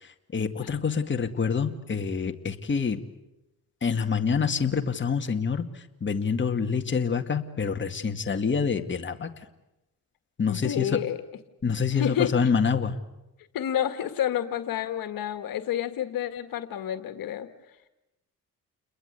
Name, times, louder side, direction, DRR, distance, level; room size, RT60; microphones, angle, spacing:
voice 1, 0.0-3.0 3.8-9.3 10.4-11.0 11.6-13.0, left 6 dB, 35° left, 5 dB, 2.1 m, -26 dB
voice 2, 10.5-11.2 11.9-12.3 13.5-17.5, left 10 dB, 75° left, 9 dB, 2.0 m, -29 dB
30.0 x 22.0 x 8.2 m, 0.93 s
cardioid pair, 80°, 35 cm